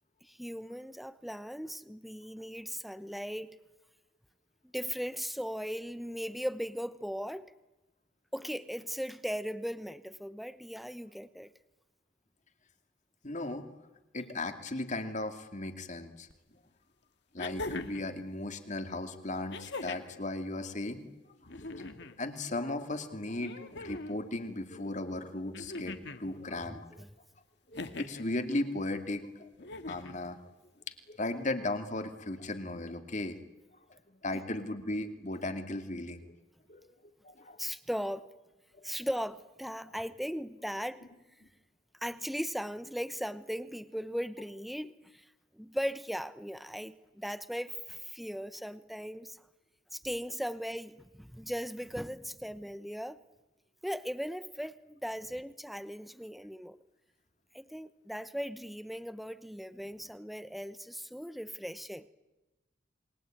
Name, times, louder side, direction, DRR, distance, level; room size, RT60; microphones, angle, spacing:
voice 1, 0.2-3.6 4.6-7.5 8.3-11.5 26.5-27.1 34.3-34.4 37.6-38.2 38.8-41.1 42.0-45.3 45.5-49.4 49.9-53.2 53.8-56.8 57.5-62.1, equal, ahead, 13 dB, 0.9 m, -38 dB
voice 2, 13.2-13.7 14.1-16.3 17.3-21.0 21.6-27.0 27.7-30.4 31.1-33.5 33.9-36.3 36.7-36.9 37.2-37.6 38.7-38.8, left 2 dB, 40° left, 7 dB, 2.5 m, -36 dB
sound 1, 16.3-16.4 17.4-18.1 19.5-20.2 21.4-22.2 23.4-24.2 25.5-26.2 27.7-28.3 29.6-30.2 31.5-31.6, left 2 dB, 60° left, 1.8 m, -41 dB
28.0 x 22.5 x 9.1 m, 1.0 s
head